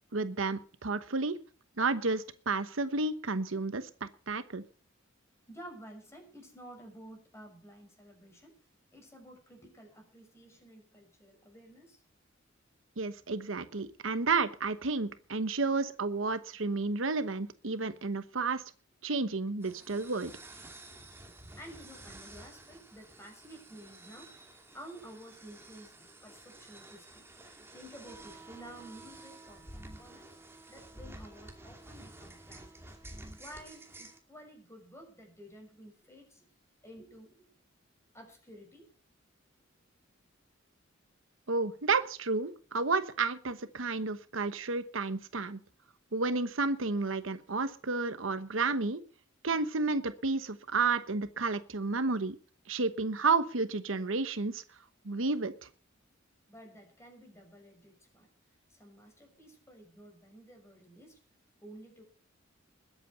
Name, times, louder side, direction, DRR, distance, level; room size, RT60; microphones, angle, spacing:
voice 1, 0.1-1.4 1.8-4.6 13.0-18.6 19.0-20.3 41.5-45.6 46.1-49.0 49.4-52.4 52.7-54.6 55.0-55.5, right 3 dB, 80° right, 12 dB, 1.1 m, -31 dB
voice 2, 5.5-8.5 8.9-12.0 21.5-30.4 30.7-36.4 36.8-37.5 38.1-38.9 56.5-58.3 58.7-61.2 61.6-62.0, right 1 dB, 15° left, 2 dB, 6.4 m, -52 dB
sound 1, 19.6-34.2, right 2 dB, 15° right, 2.5 m, -51 dB
21.0 x 8.5 x 5.3 m, 0.41 s
head